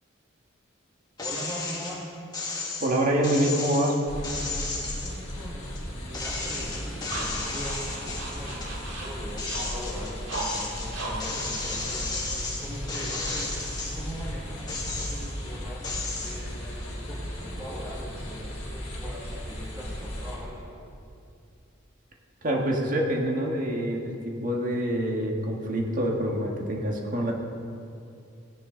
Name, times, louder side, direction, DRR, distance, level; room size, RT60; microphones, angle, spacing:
Glass break, 1.2-2.0 2.3-5.8 6.1-8.7 9.1-14.1 14.6-15.4 15.8-16.4, left 3 dB, 20° left, 2.0 m, -34 dB
voice 1, 1.2-2.1 4.9-13.5 13.8-15.9 16.2-20.7, equal, 15° right, -7 dB, 1.8 m, -41 dB
voice 2, 2.8-4.0 22.4-27.3, right 1 dB, 40° right, 0 dB, 1.7 m, -26 dB
sound 1, 4.1-20.4, equal, 35° left, 3.0 m, -36 dB
sound 2, 6.3-12.8, right 2 dB, 60° right, 2.0 m, -38 dB
17.0 x 10.0 x 4.0 m, 2.5 s
head